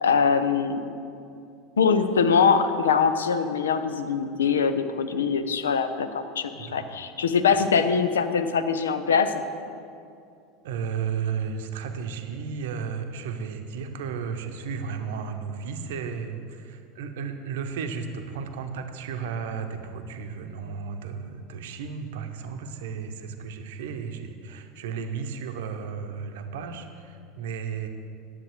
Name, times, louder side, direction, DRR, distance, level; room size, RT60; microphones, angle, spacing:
voice 1, 0.0-0.8 1.8-9.3, left 6 dB, 70° left, 10 dB, 0.5 m, -23 dB
voice 2, 6.5-7.0 7.8-7.9 10.6-27.9, right 6 dB, 60° right, 6 dB, 0.7 m, -34 dB
10.5 x 7.5 x 4.7 m, 2.4 s
figure-of-eight pair, 75°, 0 cm